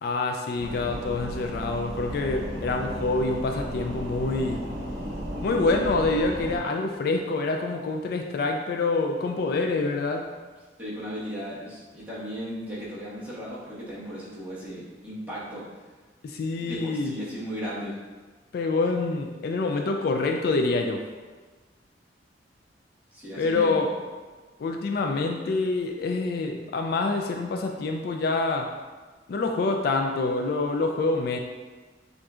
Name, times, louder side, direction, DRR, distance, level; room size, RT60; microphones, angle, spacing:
voice 1, 0.0-4.6 5.4-10.3 16.2-17.1 18.5-21.0 23.4-23.9 24.6-28.7 29.3-31.4, left 3 dB, 60° left, 3 dB, 0.3 m, -26 dB
sound 1, 0.6-6.6, equal, 70° right, 0.8 m, -34 dB
voice 2, 10.8-15.6 16.6-18.0 23.1-23.8, equal, 10° right, -9 dB, 1.3 m, -36 dB
7.4 x 2.6 x 2.4 m, 1.3 s
head